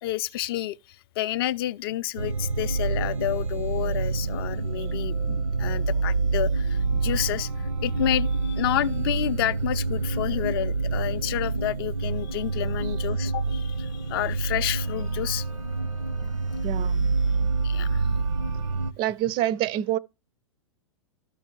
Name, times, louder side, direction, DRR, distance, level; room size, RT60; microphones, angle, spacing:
voice 1, 0.0-0.8 1.2-7.5 7.8-15.5 17.6-18.0, left 13 dB, 45° left, 0.5 m, -30 dB
sound 1, 2.2-18.9, right 4 dB, 85° right, 0.8 m, -27 dB
voice 2, 16.6-17.1 19.0-20.0, right 12 dB, 30° right, 0.4 m, -27 dB
13.0 x 4.6 x 3.0 m
figure-of-eight pair, 105°, 16 cm